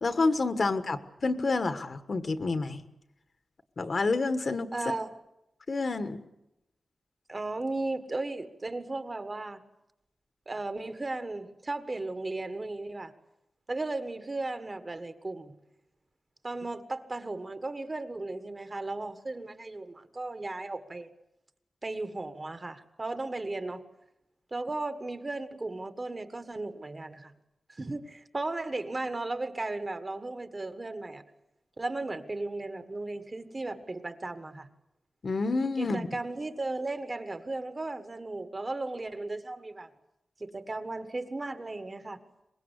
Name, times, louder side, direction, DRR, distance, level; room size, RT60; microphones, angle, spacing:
voice 1, 0.0-2.8 3.8-4.7 5.7-6.2 35.2-36.1, left 3 dB, 45° left, 10 dB, 1.5 m, -28 dB
voice 2, 4.7-5.1 7.3-9.6 10.5-13.1 13.7-15.5 16.4-21.1 21.8-23.8 24.5-27.3 27.7-31.2 31.8-34.7 35.8-39.9 40.4-42.2, right 2 dB, 25° right, 10 dB, 1.5 m, -35 dB
24.0 x 21.5 x 8.3 m, 0.88 s
wide cardioid pair, 160°, 0 cm